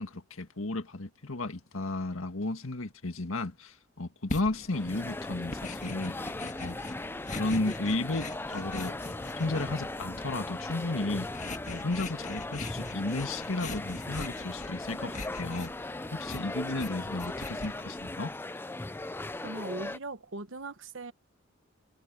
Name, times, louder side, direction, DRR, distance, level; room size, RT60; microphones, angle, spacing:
voice 1, 0.0-6.2 6.6-6.8 7.3-9.0 9.4-11.3 11.7-15.7 16.1-18.3, left 2 dB, 80° left, 1.9 m, -33 dB
sound 1, 4.3-18.1, left 2 dB, 35° left, 1.6 m, -42 dB
sound 2, 4.7-20.0, left 2 dB, 10° left, 0.4 m, -38 dB
voice 2, 19.4-21.1, right 2 dB, 65° right, 1.2 m, -39 dB
head